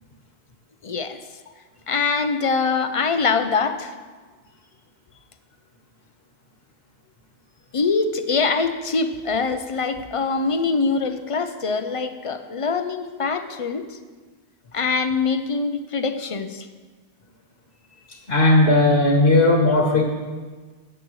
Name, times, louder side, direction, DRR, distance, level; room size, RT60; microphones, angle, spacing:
voice 1, 0.8-1.2 1.9-3.9 7.7-14.0 14.7-16.7, left 4 dB, 40° left, 8 dB, 0.5 m, -23 dB
voice 2, 18.3-20.1, left 2 dB, 60° left, 0 dB, 1.5 m, -16 dB
15.0 x 9.0 x 3.2 m, 1.4 s
omnidirectional pair, 1.1 m